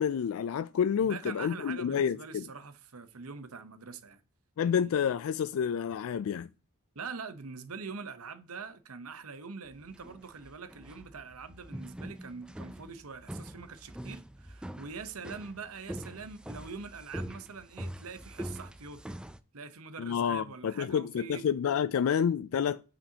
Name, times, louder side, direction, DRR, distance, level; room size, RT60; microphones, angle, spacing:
voice 1, 0.0-2.5 4.6-6.5 20.0-22.8, left 7 dB, 70° left, 0.3 m, -29 dB
voice 2, 1.0-4.2 4.6-5.0 6.9-19.0 19.5-21.4, right 5 dB, 80° right, 1.0 m, -44 dB
sound 1, 9.7-19.4, equal, 5° right, 0.4 m, -43 dB
8.7 x 7.1 x 2.9 m
head